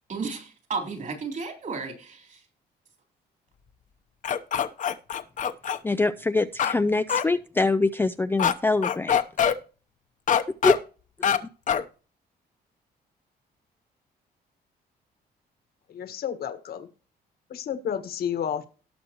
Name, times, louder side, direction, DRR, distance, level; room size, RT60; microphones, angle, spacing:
voice 1, 0.0-2.4, right 4 dB, 50° right, 4 dB, 3.9 m, -33 dB
sound 1, 4.2-5.8 6.6-6.8 7.1-7.2 8.4-8.5 8.8-9.5 10.3-10.8 11.2-11.4 11.7-11.8, left 8 dB, 50° left, 0.9 m, -23 dB
voice 2, 5.8-9.2 10.6-10.7, left 3 dB, 10° left, 9 dB, 0.4 m, -24 dB
voice 3, 15.9-16.9 17.5-18.7, left 8 dB, 65° left, 9 dB, 1.4 m, -31 dB
18.0 x 6.2 x 3.0 m, 0.37 s
cardioid pair, 120°, 17 cm